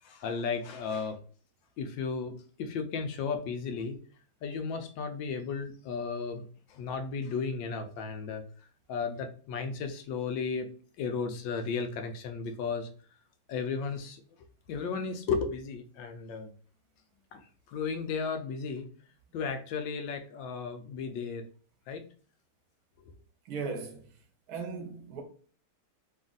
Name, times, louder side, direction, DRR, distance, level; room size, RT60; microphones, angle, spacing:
voice 1, 0.0-1.2 1.8-4.0 4.4-8.4 8.9-10.7 11.0-12.9 13.5-14.2 14.7-16.5 17.3-18.9 19.3-21.4 21.9-22.0 23.0-23.1, left 5 dB, 90° left, 1.4 m, -34 dB
voice 2, 23.5-24.0 24.5-25.2, right 4 dB, 60° right, 1.2 m, -37 dB
3.4 x 2.4 x 3.8 m
omnidirectional pair, 2.0 m